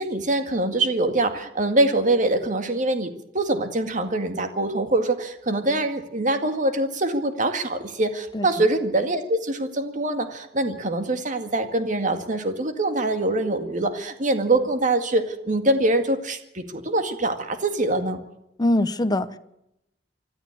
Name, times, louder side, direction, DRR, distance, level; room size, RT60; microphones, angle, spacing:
voice 1, 0.0-18.2, right 2 dB, 45° right, 7 dB, 2.0 m, -24 dB
voice 2, 18.6-19.4, left 1 dB, 20° left, 11 dB, 0.9 m, -22 dB
25.5 x 13.0 x 8.6 m, 0.83 s
head